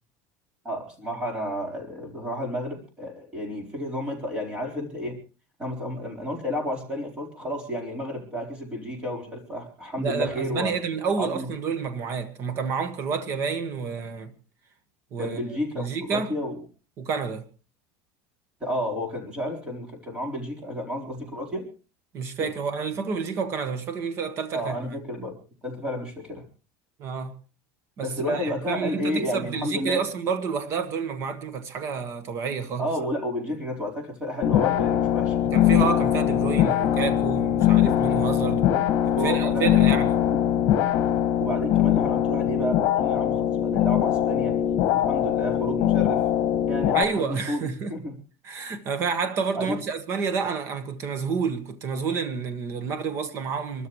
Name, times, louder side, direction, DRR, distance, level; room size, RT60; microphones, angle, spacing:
voice 1, 0.6-5.2 5.6-10.7 11.2-11.5 15.2-16.6 18.6-21.7 22.3-22.5 24.5-25.4 25.6-26.4 28.0-30.0 32.8-35.4 39.1-39.9 40.2-40.5 41.4-44.6 44.9-46.2 46.7-48.2 49.5-49.8, left 1 dB, 15° right, 4.1 m, -31 dB
voice 2, 10.0-14.3 15.1-15.4 15.8-16.3 17.0-17.4 22.1-24.7 27.0-27.3 28.0-32.9 35.5-38.7 39.2-40.2 46.9-47.9 48.4-53.9, right 5 dB, 35° right, 1.5 m, -29 dB
sound 1, 34.4-47.0, left 11 dB, 45° left, 1.8 m, -22 dB
27.0 x 13.0 x 3.2 m
cardioid pair, 170°, 8 cm